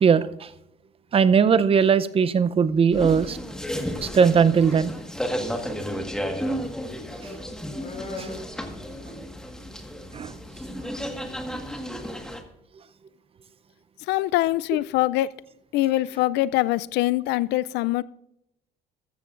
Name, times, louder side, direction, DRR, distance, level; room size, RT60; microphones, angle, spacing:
voice 1, 1.1-3.4 4.0-4.9 8.2-8.3 10.1-10.3, right 6 dB, 35° right, 0.6 m, -19 dB
sound 1, 2.9-12.4, equal, 5° left, 1.5 m, -33 dB
sound 2, 7.8-9.6 10.0-12.4, left 2 dB, 40° left, 4.3 m, -43 dB
voice 2, 14.1-15.3 15.7-18.0, left 16 dB, 85° left, 0.4 m, -23 dB
14.0 x 13.5 x 2.5 m
cardioid pair, 110°, 17 cm